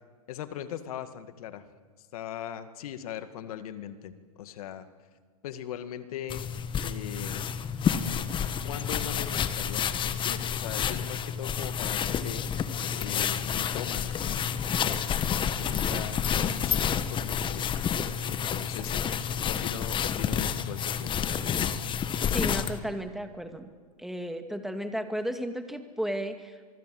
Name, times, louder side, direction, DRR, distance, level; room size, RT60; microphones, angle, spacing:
voice 1, 0.3-1.6 2.1-4.9 5.4-6.5 6.8-7.5 8.6-12.5 13.0-14.4 15.2-17.7 18.3-19.1 19.5-21.4, left 10 dB, 70° left, 11 dB, 2.0 m, -40 dB
sound 1, 6.3-22.8, left 8 dB, 25° left, 1.4 m, -29 dB
voice 2, 22.3-23.7 24.0-26.7, equal, ahead, 7 dB, 2.3 m, -34 dB
24.5 x 23.5 x 7.9 m, 1.5 s
hypercardioid pair, 115°, 20 cm